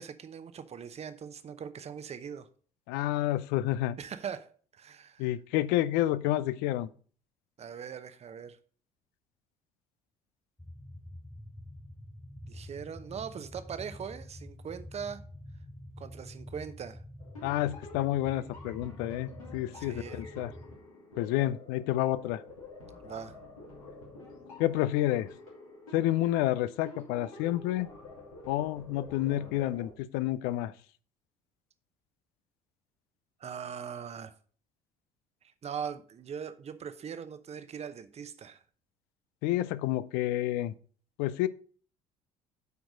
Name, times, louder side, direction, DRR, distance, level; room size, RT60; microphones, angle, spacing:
voice 1, 0.0-2.5 4.0-5.3 7.6-8.6 12.5-15.2 16.0-17.0 19.7-20.2 23.0-23.4 33.4-34.3 35.6-38.6, right 7 dB, 40° right, 0.9 m, -41 dB
voice 2, 2.9-4.0 5.2-6.9 17.4-20.5 21.2-22.4 24.6-25.3 25.9-27.9 28.5-30.7 39.4-40.7 41.2-41.5, left 14 dB, 65° left, 0.5 m, -29 dB
sound 1, 10.6-20.8, left 1 dB, 5° left, 0.7 m, -47 dB
sound 2, 17.2-29.9, left 2 dB, 85° left, 2.4 m, -49 dB
8.3 x 4.6 x 5.1 m
hypercardioid pair, 55°, 17 cm